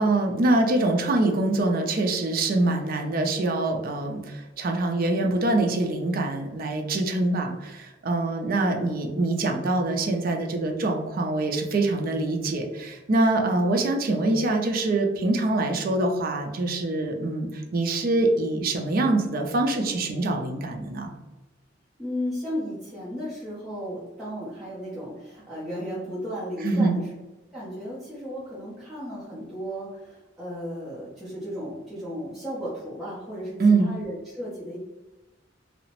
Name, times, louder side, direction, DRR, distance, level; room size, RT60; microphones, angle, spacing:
voice 1, 0.0-21.1 26.6-27.0 33.6-33.9, right 2 dB, 50° right, 4 dB, 0.4 m, -24 dB
voice 2, 22.0-27.1 27.5-34.8, equal, ahead, -11 dB, 0.7 m, -34 dB
2.8 x 2.0 x 2.9 m, 1.1 s
head